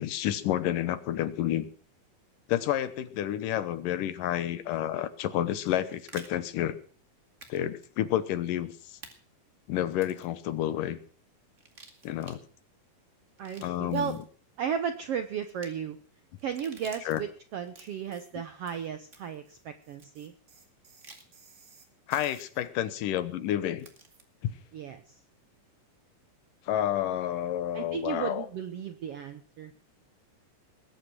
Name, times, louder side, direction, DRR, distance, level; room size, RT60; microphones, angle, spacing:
voice 1, 0.0-1.7 2.5-6.8 7.5-9.0 9.7-11.0 12.0-12.4 13.6-14.2 17.1-17.2 22.1-23.9 26.7-28.5, left 12 dB, 75° left, 14 dB, 2.6 m, -30 dB
sound 1, 5.5-6.3 7.4-7.6 7.8-7.9 9.0-9.1 9.9-10.3 11.5-12.4 13.3-14.2 15.4-15.7 16.4-17.2 17.6-18.1 19.1-19.4 20.0-20.1 21.0-21.3 22.1-22.3 23.8-24.2, right 3 dB, 25° right, 2.0 m, -51 dB
voice 2, 13.4-14.2 14.6-16.0 16.4-20.3 24.7-25.2 27.7-29.7, right 8 dB, 75° right, 9 dB, 1.4 m, -35 dB
sound 2, 18.1-18.4 18.7-22.7, right 5 dB, 45° right, 3.2 m, -58 dB
20.5 x 8.9 x 6.2 m, 0.43 s
omnidirectional pair, 3.9 m